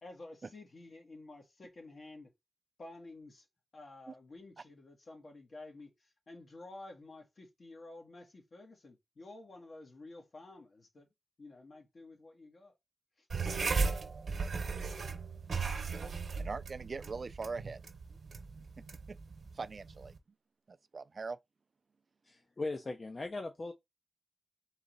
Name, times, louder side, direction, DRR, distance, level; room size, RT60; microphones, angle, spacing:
voice 1, 0.0-2.3 2.8-3.5 3.7-11.1 11.4-12.7 13.2-13.3, left 2 dB, 65° left, 1.5 m, -51 dB
sound 1, 13.3-20.2, right 4 dB, 80° right, 0.9 m, -37 dB
voice 2, 16.4-17.8 19.1-19.2 19.5-20.1 20.7-21.4, right 4 dB, 60° right, 0.3 m, -41 dB
voice 3, 22.2-23.7, left 2 dB, 45° left, 0.5 m, -39 dB
3.9 x 3.1 x 3.8 m
wide cardioid pair, 80°, 0 cm